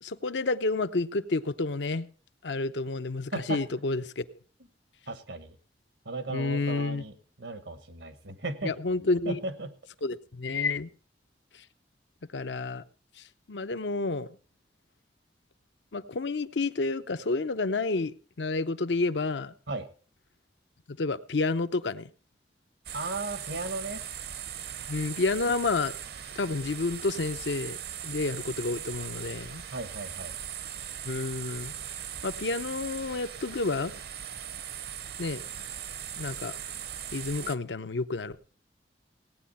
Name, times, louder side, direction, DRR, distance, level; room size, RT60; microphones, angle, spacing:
voice 1, 0.0-2.1 2.4-4.2 6.3-7.1 8.6-9.4 10.0-10.9 12.3-12.8 13.5-14.3 15.9-19.5 20.9-22.1 24.9-25.9 26.4-27.8 28.0-29.6 31.0-31.7 32.2-33.9 35.2-35.4 36.2-36.5 37.1-38.4, left 3 dB, 85° left, 0.7 m, -30 dB
voice 2, 5.1-5.5 6.0-7.1 7.4-8.7 9.2-9.7 19.7-19.9 22.9-24.0 29.7-30.3, right 2 dB, 90° right, 1.6 m, -35 dB
sound 1, 22.9-37.6, right 9 dB, 60° right, 0.7 m, -39 dB
17.5 x 9.4 x 4.2 m
head